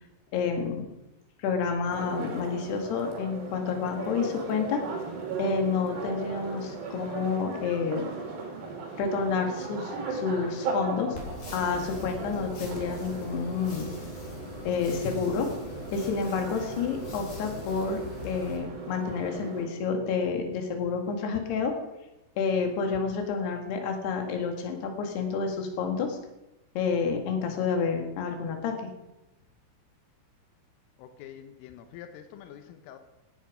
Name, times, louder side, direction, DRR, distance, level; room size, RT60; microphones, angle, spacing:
voice 1, 0.3-0.9 1.4-4.8 5.4-8.1 9.0-11.2 11.5-13.9 14.7-15.5 15.9-21.7 22.4-26.2 26.8-28.9, left 5 dB, 60° left, 4 dB, 3.8 m, -29 dB
sound 1, 1.9-19.7, right 4 dB, 60° right, 4.9 m, -37 dB
sound 2, 11.1-18.6, left 3 dB, 45° left, 4.8 m, -42 dB
voice 2, 31.0-33.0, left 10 dB, 90° left, 8 dB, 3.6 m, -46 dB
17.5 x 11.5 x 5.1 m, 0.95 s
omnidirectional pair, 5.7 m